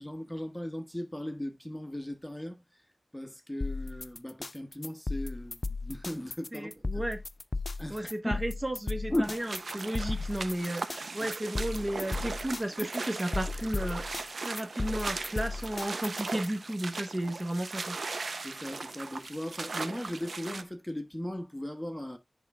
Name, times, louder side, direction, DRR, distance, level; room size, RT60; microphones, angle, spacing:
voice 1, 0.0-2.6 3.1-6.7 7.8-8.4 9.1-9.4 17.3-17.4 18.4-22.2, left 1 dB, 5° left, 1.2 m, -37 dB
sound 1, 3.6-16.5, left 3 dB, 45° left, 0.5 m, -36 dB
voice 2, 6.5-7.2 7.9-18.0, right 1 dB, 25° right, 1.1 m, -34 dB
sound 2, 9.2-20.6, right 3 dB, 70° right, 0.8 m, -38 dB
10.0 x 3.7 x 3.4 m
wide cardioid pair, 80°, 0 cm